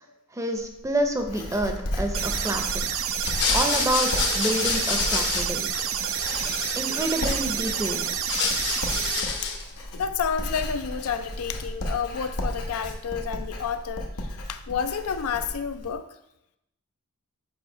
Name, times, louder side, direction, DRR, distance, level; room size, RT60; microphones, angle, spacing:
voice 1, 0.3-3.0 3.5-5.7 6.8-8.1, right 1 dB, 15° right, 5 dB, 0.6 m, -28 dB
Writing, 0.6-15.9, left 1 dB, 90° left, 1.0 m, -34 dB
sound 1, 2.1-9.2, right 9 dB, 65° right, 0.5 m, -29 dB
sound 2, 3.2-5.8 6.0-7.7 8.1-9.7, left 5 dB, 55° left, 0.9 m, -28 dB
voice 2, 9.9-16.1, left 7 dB, 70° left, 9 dB, 0.5 m, -30 dB
7.2 x 3.0 x 4.9 m, 0.82 s
head